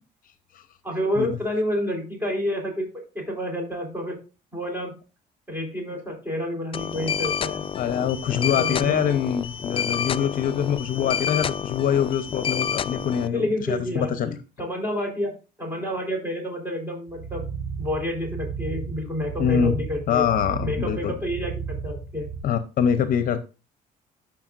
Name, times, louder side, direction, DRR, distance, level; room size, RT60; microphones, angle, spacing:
voice 1, 0.8-2.9 3.1-4.2 4.5-4.9 5.5-7.6 8.5-9.0 13.3-14.1 14.6-17.5 17.8-20.3 20.6-22.3, left 1 dB, 10° right, 1 dB, 3.8 m, -29 dB
sound 1, 6.7-13.3, left 7 dB, 30° left, 0.3 m, -29 dB
voice 2, 7.7-14.4 19.4-19.7 20.1-21.1 22.4-23.4, left 8 dB, 55° left, 11 dB, 0.8 m, -24 dB
sound 2, 17.1-22.4, right 6 dB, 75° right, 2.0 m, -33 dB
12.0 x 5.9 x 2.5 m, 0.31 s
cardioid pair, 110°, 17 cm